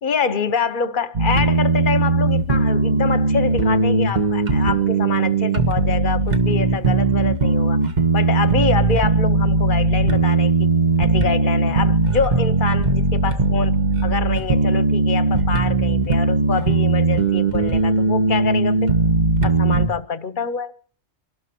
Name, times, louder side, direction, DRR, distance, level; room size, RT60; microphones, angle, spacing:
voice 1, 0.0-7.8 8.1-13.7 14.0-18.9 19.4-20.7, left 5 dB, 50° left, 1.0 m, -26 dB
sound 1, 1.1-19.9, right 3 dB, 40° right, 1.5 m, -19 dB
25.0 x 12.5 x 4.4 m
omnidirectional pair, 1.2 m